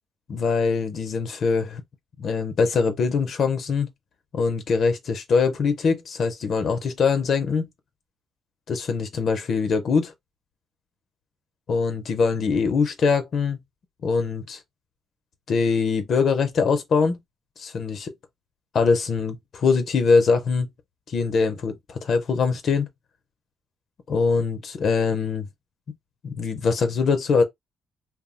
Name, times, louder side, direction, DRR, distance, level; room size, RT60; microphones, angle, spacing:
voice 1, 0.3-1.8 2.2-3.9 4.3-7.7 8.7-10.1 11.7-13.6 14.0-14.6 15.5-17.2 17.6-18.1 18.7-20.7 21.1-22.9 24.1-25.5 26.2-27.4, left 5 dB, 60° left, 0.5 m, -23 dB
2.3 x 2.0 x 3.6 m
cardioid pair, 90°, 0 cm